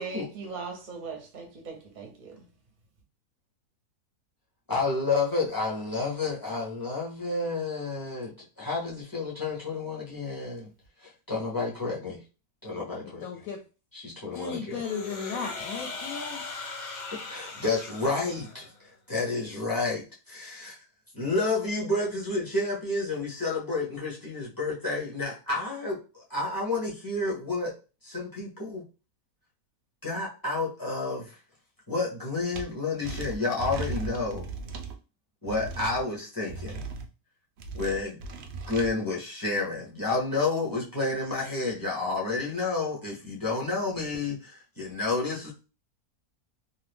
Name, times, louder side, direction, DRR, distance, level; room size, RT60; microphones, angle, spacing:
voice 1, 0.0-2.5, right 4 dB, 40° right, 0.7 m, -39 dB
voice 2, 4.7-10.7 11.0-12.2 12.6-13.2 13.9-14.8 17.3-18.7 19.1-20.8 21.1-27.8 28.0-28.8 30.0-31.4 31.9-34.5 35.4-36.8 37.7-38.2 38.7-45.5, left 3 dB, 20° left, 0.6 m, -30 dB
voice 3, 13.2-13.6 14.3-16.4, left 5 dB, 70° left, 0.9 m, -36 dB
sound 1, 14.7-18.7, left 4 dB, 90° left, 0.4 m, -39 dB
sound 2, 32.5-32.6 33.0-34.9 35.5-36.0 36.5-37.1 37.6-38.9, right 3 dB, 70° right, 0.6 m, -37 dB
2.7 x 2.4 x 3.4 m
omnidirectional pair, 1.6 m